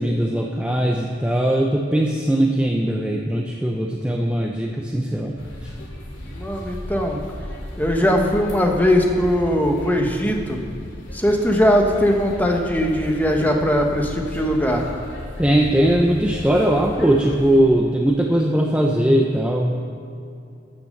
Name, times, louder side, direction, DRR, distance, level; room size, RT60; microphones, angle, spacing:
voice 1, 0.0-5.4 15.4-19.7, right 1 dB, 5° right, 0 dB, 0.6 m, -20 dB
sound 1, 5.4-17.6, equal, 80° left, 2.6 m, -35 dB
voice 2, 6.3-7.2 7.8-10.6 11.1-14.8, equal, 10° left, 1 dB, 1.1 m, -20 dB
14.5 x 6.9 x 6.6 m, 2.5 s
head